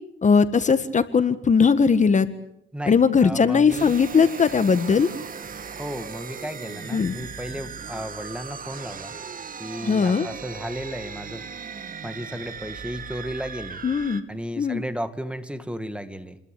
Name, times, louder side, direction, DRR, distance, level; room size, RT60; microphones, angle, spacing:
voice 1, 0.2-2.3 2.9-5.1 6.9-7.1 9.8-10.3 13.8-14.2 14.6-14.8, left 5 dB, 35° left, 12 dB, 1.7 m, -19 dB
voice 2, 2.7-3.9 5.8-9.1 9.6-11.4 12.0-13.8 14.3-16.4, equal, 5° right, 10 dB, 2.3 m, -34 dB
sound 1, 3.7-14.2, right 6 dB, 45° right, 2.3 m, -38 dB
29.0 x 21.5 x 8.6 m, 0.77 s
cardioid pair, 90°, 20 cm